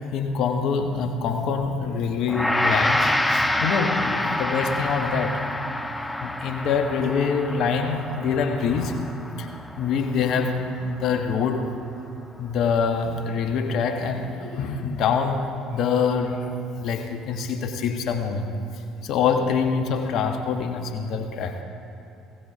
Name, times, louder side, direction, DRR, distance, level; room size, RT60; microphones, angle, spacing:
voice 1, 0.1-5.4 6.2-9.0 9.4-9.5 9.8-11.7 12.4-18.5 19.0-21.6, left 5 dB, 60° left, 5 dB, 1.2 m, -25 dB
Gong, 2.3-11.7, left 1 dB, 10° left, 0.9 m, -27 dB
20.0 x 17.5 x 2.9 m, 3.0 s
hypercardioid pair, 55°, 0 cm